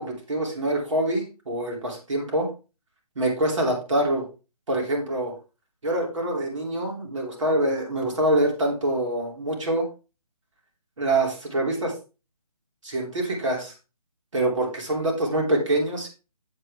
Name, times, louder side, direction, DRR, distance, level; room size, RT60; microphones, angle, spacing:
voice 1, 0.0-2.5 3.1-4.2 4.7-5.3 5.8-9.9 11.0-11.9 12.8-13.7 14.3-16.1, right 1 dB, 50° right, 0 dB, 3.2 m, -25 dB
8.1 x 7.9 x 3.6 m, 0.31 s
hypercardioid pair, 175°, 20 cm